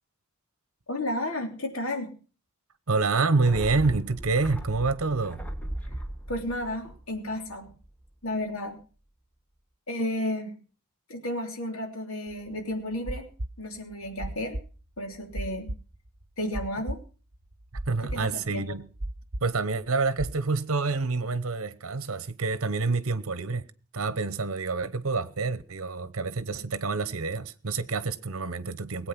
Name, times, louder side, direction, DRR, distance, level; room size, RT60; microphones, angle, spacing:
voice 1, 0.9-2.1 6.3-7.7 8.2-8.8 9.9-10.5 11.1-13.3 13.6-14.6 15.0-15.7 16.4-17.0 18.1-18.6, left 1 dB, 70° left, 3.2 m, -32 dB
voice 2, 2.9-5.4 17.9-18.9 19.4-23.7 23.9-29.1, right 3 dB, 70° right, 0.9 m, -27 dB
sound 1, 3.4-8.0 8.3-8.4, right 1 dB, 5° left, 1.5 m, -38 dB
sound 2, 12.3-20.4, right 1 dB, 40° right, 1.1 m, -36 dB
19.0 x 8.6 x 5.9 m
head